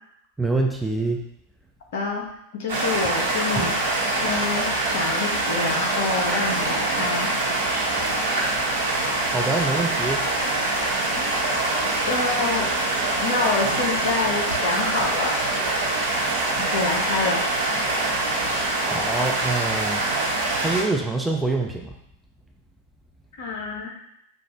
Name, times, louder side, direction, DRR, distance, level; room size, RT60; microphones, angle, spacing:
voice 1, 0.4-1.2 3.6-3.7 9.3-10.2 18.8-20.0 20.6-21.9, right 3 dB, 5° right, 1 dB, 0.4 m, -25 dB
voice 2, 1.9-2.2 2.6-3.8 4.2-7.3 12.0-12.8 13.2-15.3 16.6-17.4 23.4-24.0, left 3 dB, 55° left, 0 dB, 1.0 m, -27 dB
sound 1, 2.7-20.8, right 2 dB, 65° right, 1.2 m, -24 dB
5.8 x 2.5 x 2.8 m, 0.74 s
figure-of-eight pair, 90°, 0 cm